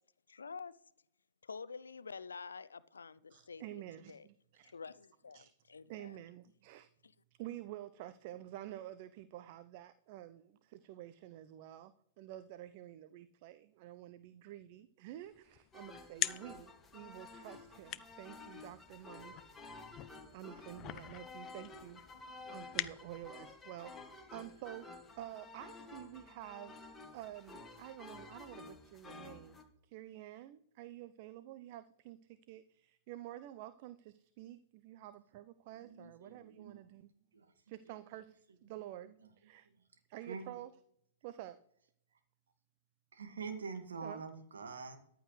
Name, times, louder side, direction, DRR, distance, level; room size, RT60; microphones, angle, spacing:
voice 1, 0.3-0.7 1.4-3.8 4.1-4.3 4.6-6.2 7.0-7.1, left 5 dB, 80° left, 0.5 m, -48 dB
voice 2, 3.3-4.7 5.3-5.5 5.9-6.9 7.4-19.9 20.3-37.1 37.7-39.1 39.4-39.7 40.1-40.7 41.2-41.6 44.0-44.2, right 13 dB, 45° right, 0.5 m, -50 dB
sound 1, 15.2-23.5, left 14 dB, 30° left, 0.5 m, -45 dB
sound 2, 15.7-29.6, left 3 dB, 10° left, 1.8 m, -52 dB
voice 3, 35.7-36.8 37.3-37.5 39.0-39.1 40.3-40.5 43.1-45.0, right 5 dB, 70° right, 1.9 m, -45 dB
14.5 x 10.0 x 3.2 m
figure-of-eight pair, 110°, 0 cm